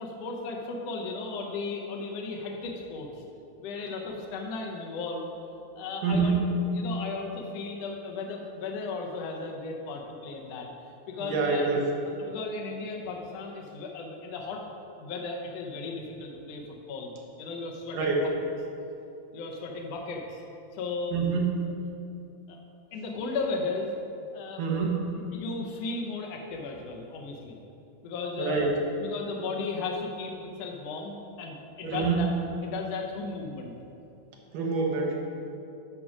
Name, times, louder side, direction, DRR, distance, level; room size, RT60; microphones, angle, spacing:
voice 1, 0.0-3.2 3.6-5.3 5.7-6.4 6.7-10.7 11.1-11.7 12.2-14.6 15.0-17.1 17.4-18.3 19.3-20.4 20.7-21.2 22.5-22.6 22.9-23.9 24.3-24.6 25.1-27.6 28.0-28.7 29.0-32.3 32.6-33.7, left 3 dB, 90° left, 1 dB, 1.4 m, -35 dB
voice 2, 6.0-6.5 11.2-11.9 17.9-18.3 21.1-21.5 24.6-25.1 28.4-28.7 31.8-32.2 34.5-35.2, right 4 dB, 65° right, -1 dB, 2.4 m, -26 dB
10.5 x 6.0 x 5.1 m, 2.7 s
omnidirectional pair, 4.2 m